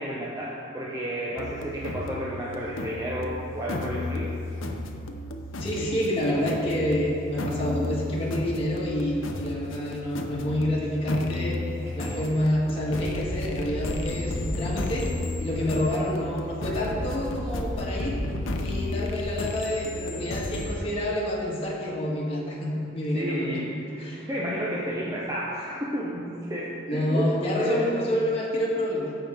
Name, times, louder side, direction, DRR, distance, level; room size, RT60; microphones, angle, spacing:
voice 1, 0.0-4.3 11.8-12.2 15.6-15.8 23.1-27.3 27.6-27.9, equal, 15° right, -6 dB, 0.8 m, -32 dB
sound 1, 1.4-20.7, left 2 dB, 85° left, 0.7 m, -33 dB
voice 2, 5.6-11.6 12.0-15.1 15.4-18.2 18.6-23.6 24.0-24.3 26.9-29.2, left 1 dB, 30° left, -5 dB, 1.7 m, -28 dB
16.0 x 5.7 x 3.6 m, 2.6 s
head